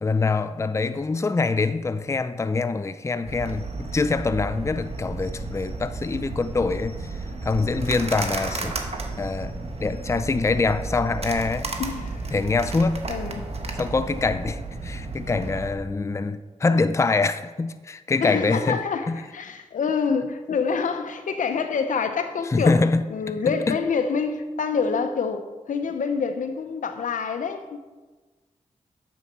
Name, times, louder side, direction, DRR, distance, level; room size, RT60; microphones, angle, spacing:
voice 1, 0.0-7.1 7.4-8.8 9.2-9.5 9.8-11.7 12.3-13.1 13.7-18.8 19.1-19.2 22.5-23.1 23.5-23.8, left 3 dB, 20° left, 0.4 m, -24 dB
sound 1, 3.3-15.7, right 3 dB, 50° right, 1.2 m, -33 dB
voice 2, 11.8-12.2 13.1-13.5 18.2-22.8 23.1-27.8, left 5 dB, 80° left, 0.8 m, -26 dB
7.3 x 7.1 x 5.3 m
cardioid pair, 55°, 13 cm